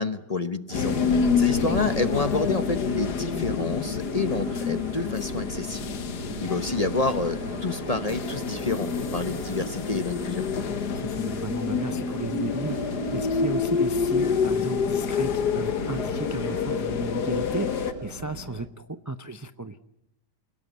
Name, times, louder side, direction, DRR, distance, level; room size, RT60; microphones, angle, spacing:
voice 1, 0.0-5.8 6.4-10.5, left 3 dB, 30° left, 11 dB, 0.9 m, -29 dB
sound 1, 0.7-17.9, left 6 dB, 70° left, 1.9 m, -28 dB
sound 2, 0.7-18.7, right 4 dB, 75° right, 2.5 m, -39 dB
voice 2, 10.9-19.8, right 2 dB, 25° right, 10 dB, 0.4 m, -34 dB
29.5 x 18.0 x 8.2 m, 0.85 s
omnidirectional pair, 1.8 m